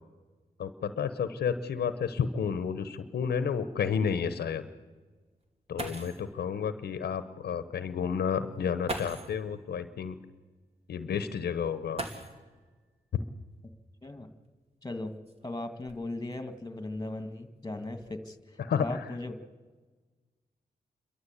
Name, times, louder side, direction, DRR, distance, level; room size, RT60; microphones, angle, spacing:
voice 1, 0.6-4.7 5.7-10.1 10.9-12.0 18.6-19.1, left 7 dB, 85° left, 12 dB, 1.0 m, -31 dB
sound 1, 5.4-5.5 5.8-6.3 7.6-7.7 8.8-9.4 11.9-12.7 14.0-14.1 14.9-16.3 17.0-17.4 17.7-18.1, right 2 dB, 40° right, 2.7 m, -40 dB
voice 2, 14.0-14.3 14.8-15.1 15.4-19.3, left 2 dB, 20° left, 9 dB, 2.1 m, -38 dB
29.0 x 13.0 x 8.3 m, 1.3 s
cardioid pair, 70°, 16 cm